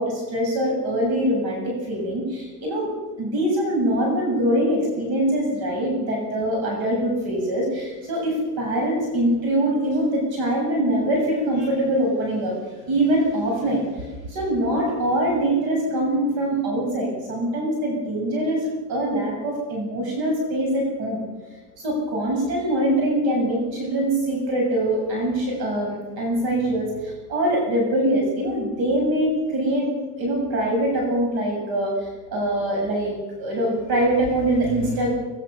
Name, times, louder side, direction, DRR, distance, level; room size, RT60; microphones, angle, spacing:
voice 1, 0.0-2.9 3.2-12.6 12.9-21.2 21.8-29.9 30.2-35.1, right 1 dB, 50° right, 0 dB, 7.3 m, -23 dB
23.5 x 21.5 x 7.0 m, 1.3 s
supercardioid pair, 125°, 48 cm